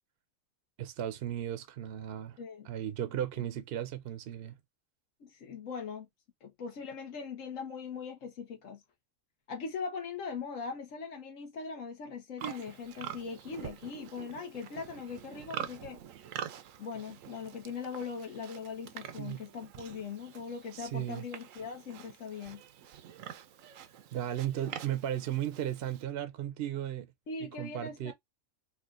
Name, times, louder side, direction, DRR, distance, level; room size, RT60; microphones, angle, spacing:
voice 1, 0.8-2.4 2.6-4.6 19.2-19.4 20.7-21.2 24.1-27.1 27.6-28.1, right 11 dB, 60° right, 0.8 m, -35 dB
voice 2, 2.4-2.7 5.2-6.1 6.4-8.8 9.5-16.0 16.8-22.6 27.3-28.1, left 5 dB, 75° left, 1.4 m, -40 dB
Livestock farm animals working animals, 12.4-26.0, right 9 dB, 80° right, 1.0 m, -46 dB
4.3 x 2.5 x 2.4 m
omnidirectional pair, 1.4 m